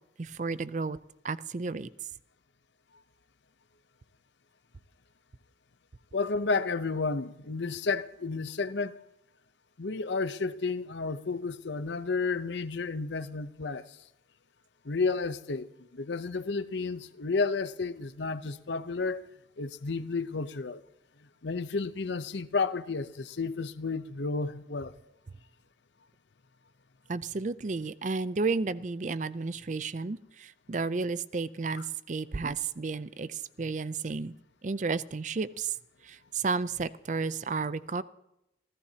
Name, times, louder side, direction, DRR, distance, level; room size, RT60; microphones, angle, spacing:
voice 1, 0.2-1.0 1.2-1.9 27.1-34.3 34.6-35.7 36.0-38.0, right 4 dB, 40° right, 0.5 m, -32 dB
voice 2, 6.1-9.0 9.8-14.0 14.8-19.3 19.6-20.8 21.4-24.9, left 4 dB, 75° left, 0.7 m, -32 dB
26.5 x 16.0 x 2.9 m
head